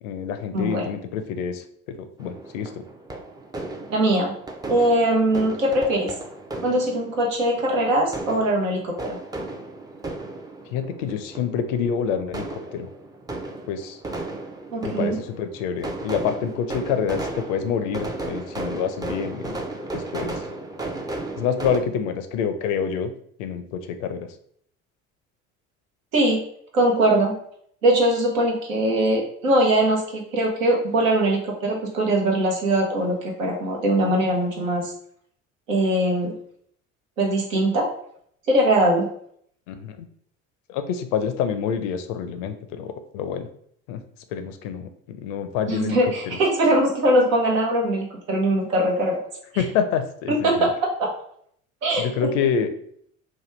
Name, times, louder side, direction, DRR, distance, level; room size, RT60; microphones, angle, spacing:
voice 1, 0.0-2.8 10.7-12.9 13.7-14.0 14.8-19.6 19.9-20.4 21.4-23.1 23.4-24.3 39.7-40.1 40.7-43.5 43.9-44.0 44.3-46.4 49.6-50.7 52.0-52.7, left 7 dB, 70° left, 9 dB, 0.5 m, -27 dB
voice 2, 0.5-0.8 3.9-4.3 4.7-6.1 6.6-9.2 14.7-15.2 26.1-26.4 26.7-27.4 27.8-34.9 35.7-36.3 37.2-37.9 38.5-39.1 45.7-49.2 50.3-51.1 51.8-52.3, right 1 dB, 85° right, 0 dB, 0.8 m, -21 dB
sound 1, 2.2-21.8, right 2 dB, 10° right, 0.4 m, -35 dB
3.0 x 2.2 x 3.1 m, 0.65 s
hypercardioid pair, 60°, 39 cm